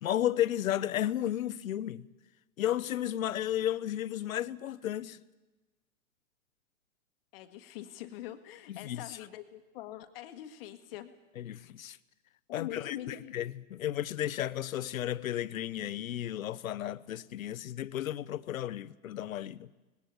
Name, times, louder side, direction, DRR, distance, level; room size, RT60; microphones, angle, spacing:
voice 1, 0.0-2.1 2.6-5.2 8.7-9.2 11.4-12.0 12.5-19.7, left 12 dB, 70° left, 0.9 m, -33 dB
voice 2, 7.3-11.1 12.5-13.3, left 12 dB, 40° left, 1.4 m, -43 dB
19.5 x 16.5 x 8.5 m
hypercardioid pair, 135°, 42 cm